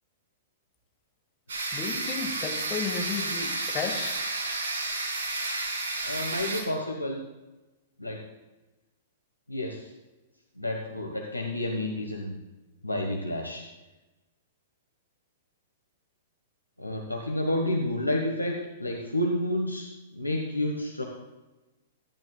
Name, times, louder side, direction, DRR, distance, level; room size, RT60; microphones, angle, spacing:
sound 1, 1.5-6.6, right 2 dB, 60° right, 4.1 m, -31 dB
voice 1, 1.7-4.2, left 5 dB, 25° left, 3 dB, 1.6 m, -34 dB
voice 2, 6.0-7.2 8.0-8.2 9.5-9.9 10.6-12.3 12.8-13.6 16.8-21.0, left 1 dB, 85° left, 2 dB, 1.2 m, -30 dB
15.5 x 10.5 x 2.3 m, 1.1 s
figure-of-eight pair, 105°, 0 cm